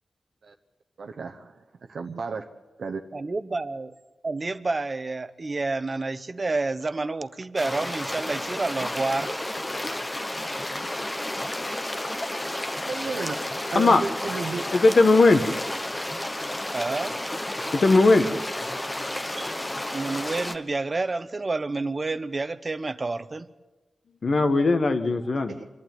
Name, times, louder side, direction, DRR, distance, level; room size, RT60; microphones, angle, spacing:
voice 1, 1.0-1.5 1.9-2.5 2.8-3.0 12.8-13.3 13.7-14.6 25.5-25.6, right 4 dB, 70° right, 3 dB, 0.9 m, -32 dB
voice 2, 3.1-3.9 4.2-9.4 16.7-17.2 19.4-19.5 19.9-23.5, right 3 dB, 35° right, 13 dB, 0.9 m, -29 dB
sound 1, 7.6-20.6, left 1 dB, 15° left, 1.2 m, -31 dB
voice 3, 14.7-15.4 17.7-18.3 24.2-25.5, left 3 dB, 55° left, 8 dB, 1.5 m, -18 dB
25.5 x 11.5 x 9.3 m, 1.2 s
wide cardioid pair, 90°, 0 cm